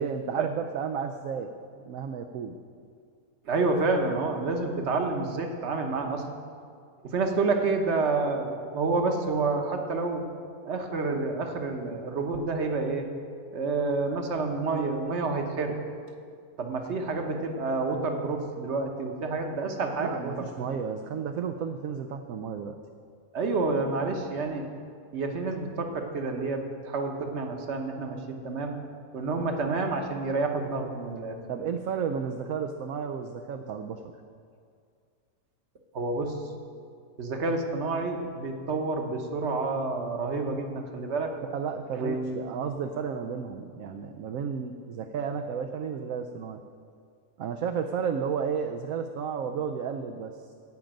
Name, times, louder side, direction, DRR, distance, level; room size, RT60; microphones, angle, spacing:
voice 1, 0.0-1.5 1.8-2.6 20.0-22.8 31.5-34.0 41.5-46.6 47.4-50.5, right 6 dB, 70° right, 5 dB, 1.0 m, -32 dB
voice 2, 3.4-6.2 7.0-10.2 10.6-13.1 13.5-15.8 16.6-20.3 23.3-24.6 25.1-28.7 29.1-31.4 35.9-36.3 37.2-41.3 42.0-42.4, right 3 dB, 50° right, 4 dB, 1.3 m, -29 dB
15.5 x 5.2 x 8.9 m, 2.3 s
omnidirectional pair, 1.6 m